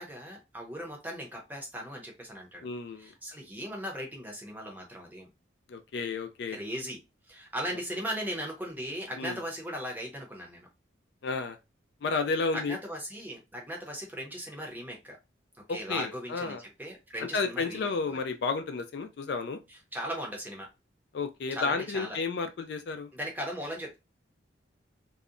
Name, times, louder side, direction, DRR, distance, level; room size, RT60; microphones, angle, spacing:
voice 1, 0.0-2.7 3.0-5.3 6.5-7.0 7.3-10.7 12.5-15.2 15.7-18.2 19.7-20.7 21.5-22.2 23.1-24.0, equal, 10° right, 0.6 m, -38 dB
voice 2, 2.6-3.1 5.7-6.6 9.2-9.4 11.2-11.6 12.0-12.8 15.7-16.6 17.3-19.6 21.1-23.1, left 4 dB, 60° left, 0.3 m, -32 dB
2.7 x 2.1 x 2.4 m
head